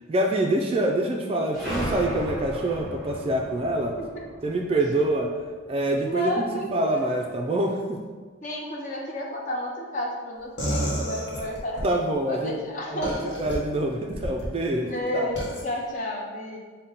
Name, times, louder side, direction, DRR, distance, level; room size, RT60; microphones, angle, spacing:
voice 1, 0.1-4.0 4.4-5.3 5.7-6.5 6.7-8.0 11.8-12.5 12.9-15.3, right 1 dB, 30° right, 1 dB, 0.3 m, -26 dB
sound 1, 1.5-6.0, equal, ahead, 1.0 m, -35 dB
voice 2, 4.0-4.3 6.0-7.2 8.4-11.8 12.3-13.3 14.8-16.6, left 1 dB, 40° left, -1 dB, 0.6 m, -31 dB
sound 2, 10.6-11.9 13.0-13.6 14.1-14.5 15.4-15.6, equal, 60° left, 1.3 m, -29 dB
5.6 x 2.2 x 3.8 m, 1.4 s
head